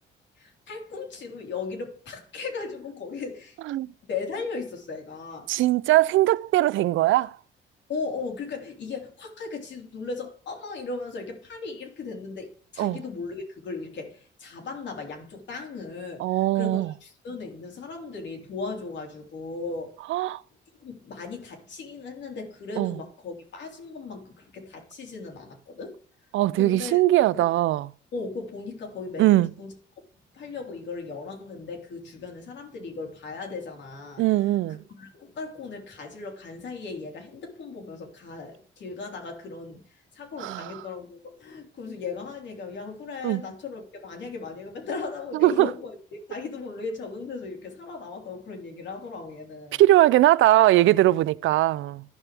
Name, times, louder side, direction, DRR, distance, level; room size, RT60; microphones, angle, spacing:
voice 1, 0.4-3.6 4.0-5.5 7.9-20.0 20.8-26.0 26.6-27.0 27.3-27.5 28.1-29.7 30.3-34.3 35.0-49.8, left 4 dB, 65° left, 3.5 m, -37 dB
voice 2, 5.5-7.3 12.8-13.0 16.2-16.9 20.1-20.4 22.8-22.9 26.3-27.9 29.2-29.5 34.2-34.8 40.4-40.7 43.2-43.4 45.4-45.7 49.8-52.0, right 15 dB, 80° right, 0.4 m, -20 dB
14.5 x 5.9 x 3.5 m
cardioid pair, 90°, 20 cm